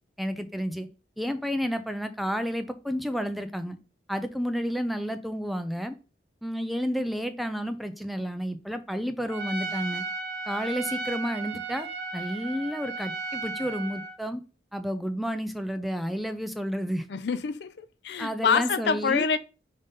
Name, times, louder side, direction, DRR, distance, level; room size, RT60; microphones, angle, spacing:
voice 1, 0.2-0.9 1.2-3.8 4.1-5.9 6.4-10.0 10.5-11.9 12.1-14.4 14.7-17.1 18.2-19.3, equal, ahead, 0.4 m, -31 dB
Trumpet, 9.3-14.2, right 3 dB, 65° right, 1.2 m, -35 dB
voice 2, 17.1-19.4, left 5 dB, 70° left, 0.4 m, -26 dB
5.3 x 3.8 x 5.3 m
head